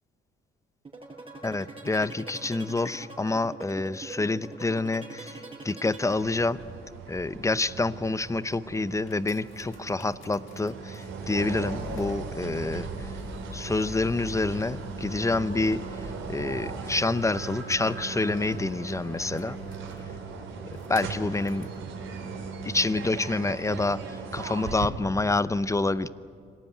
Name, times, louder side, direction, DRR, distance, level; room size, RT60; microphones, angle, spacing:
sound 1, 0.8-6.8, right 3 dB, 25° right, 5.7 m, -42 dB
voice 1, 1.4-6.6 7.1-13.2 13.5-19.6 20.7-21.7 22.6-26.1, left 3 dB, 15° left, 16 dB, 0.7 m, -28 dB
sound 2, 6.0-24.9, right 5 dB, 80° right, 3.6 m, -38 dB
sound 3, 8.8-21.8 22.5-22.6, left 7 dB, 80° left, 2.0 m, -48 dB
26.0 x 18.0 x 9.3 m, 2.4 s
cardioid pair, 90°, 20 cm